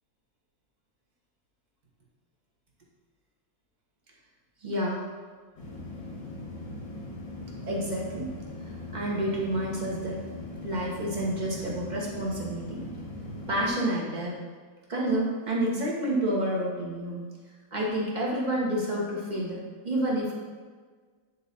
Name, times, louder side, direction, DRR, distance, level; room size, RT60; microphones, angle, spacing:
voice 1, 4.6-5.0 7.6-8.3 8.9-10.2 10.6-12.8 13.5-14.4 14.9-17.3 17.7-20.3, right 1 dB, 25° right, -4 dB, 1.2 m, -29 dB
sound 1, 5.6-13.7, left 2 dB, 85° left, 2.1 m, -40 dB
9.6 x 3.7 x 4.2 m, 1.5 s
omnidirectional pair, 2.1 m